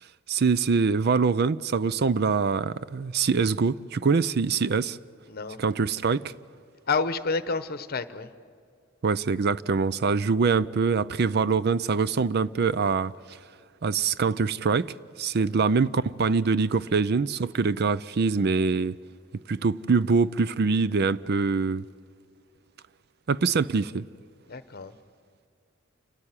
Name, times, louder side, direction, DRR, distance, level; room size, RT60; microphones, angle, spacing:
voice 1, 0.3-5.0 5.6-6.3 9.0-13.1 13.8-19.0 19.5-21.9 23.3-24.0, right 4 dB, 50° right, 0.5 m, -24 dB
voice 2, 5.3-5.6 6.9-8.3 15.3-15.8 24.5-24.9, left 4 dB, 50° left, 1.0 m, -30 dB
29.0 x 13.5 x 9.8 m
head